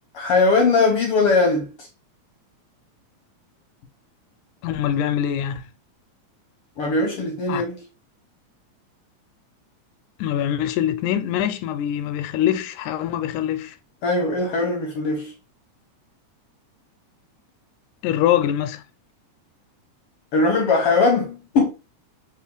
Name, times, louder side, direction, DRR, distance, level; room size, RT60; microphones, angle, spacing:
voice 1, 0.1-1.7 6.8-7.8 14.0-15.3 20.3-21.7, left 3 dB, 70° left, 1.4 m, -20 dB
voice 2, 4.6-5.6 7.5-7.6 10.2-13.8 18.0-18.8, left 10 dB, 85° left, 2.0 m, -23 dB
4.7 x 2.9 x 3.3 m
omnidirectional pair, 3.4 m